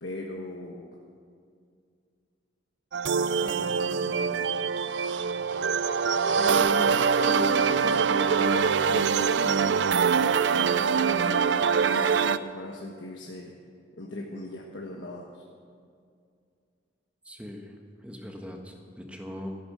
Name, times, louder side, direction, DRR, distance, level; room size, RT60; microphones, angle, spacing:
voice 1, 0.0-1.0 3.4-4.6 6.4-13.5 14.0-15.4, left 1 dB, 75° left, -1 dB, 1.3 m, -39 dB
sound 1, 2.9-12.4, right 6 dB, 70° right, 0.4 m, -24 dB
voice 2, 17.2-19.6, equal, 5° right, 2 dB, 1.4 m, -41 dB
14.5 x 11.5 x 6.7 m, 2.2 s
head